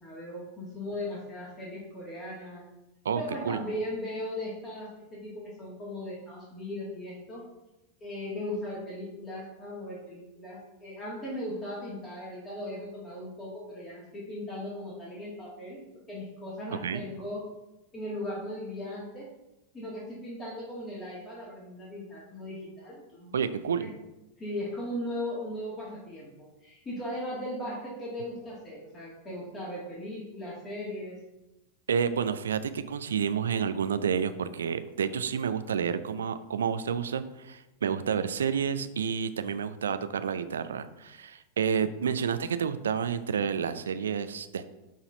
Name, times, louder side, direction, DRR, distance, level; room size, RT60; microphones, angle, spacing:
voice 1, 0.0-2.7 3.1-7.4 8.0-15.8 16.1-17.4 17.9-19.3 19.7-23.3 23.8-23.9 24.4-31.2, left 1 dB, 20° left, -6 dB, 2.5 m, -38 dB
voice 2, 3.0-3.6 16.7-17.0 23.3-23.9 31.9-44.7, right 7 dB, 65° right, 11 dB, 0.5 m, -30 dB
11.5 x 4.2 x 3.9 m, 0.98 s
figure-of-eight pair, 90°, 0 cm